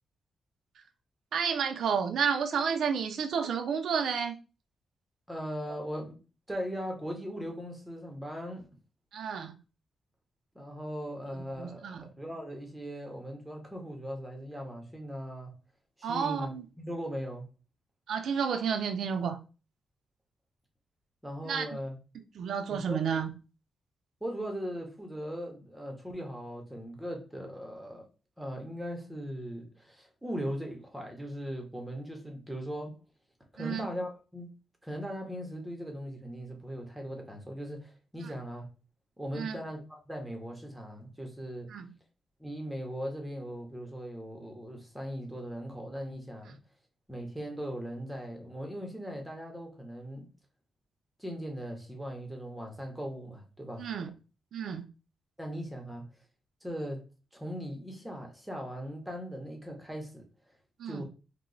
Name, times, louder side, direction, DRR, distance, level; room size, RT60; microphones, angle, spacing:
voice 1, 1.3-4.4 9.1-9.5 11.3-12.1 16.0-16.6 18.1-19.4 21.4-21.7 22.4-23.3 33.6-33.9 39.3-39.6 41.7-41.9 53.8-54.1 54.5-54.9 60.8-61.0, right 6 dB, 75° right, 0.4 m, -31 dB
voice 2, 5.3-6.2 6.5-8.7 10.5-15.5 16.0-16.5 16.8-17.5 21.2-22.0 22.7-23.0 24.2-28.0 28.4-32.9 33.5-34.5 34.8-38.7 39.2-41.7 42.4-46.6 47.1-50.3 51.2-53.9 55.4-56.0 56.6-57.0 57.3-60.2 60.8-61.0, equal, 5° right, 0.7 m, -39 dB
2.9 x 2.0 x 3.8 m
wide cardioid pair, 130°, 0 cm